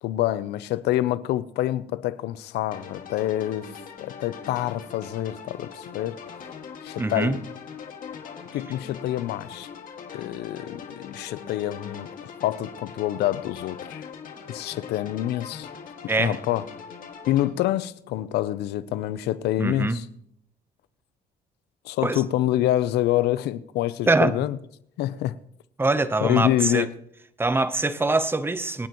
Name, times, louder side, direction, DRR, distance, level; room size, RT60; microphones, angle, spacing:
voice 1, 0.0-3.7 4.0-6.2 6.8-7.4 8.5-9.7 10.1-14.1 14.5-15.7 16.2-16.6 17.3-20.1 21.8-24.6 25.0-25.3 26.2-26.9, left 13 dB, 80° left, 0.7 m, -26 dB
sound 1, 2.7-17.5, left 6 dB, 55° left, 2.1 m, -41 dB
voice 2, 7.0-7.4 16.1-16.4 19.6-20.0 22.0-22.2 24.1-24.3 25.8-26.9 27.4-28.9, right 2 dB, 15° right, 0.9 m, -23 dB
26.0 x 9.3 x 3.1 m
cardioid pair, 110°, 17 cm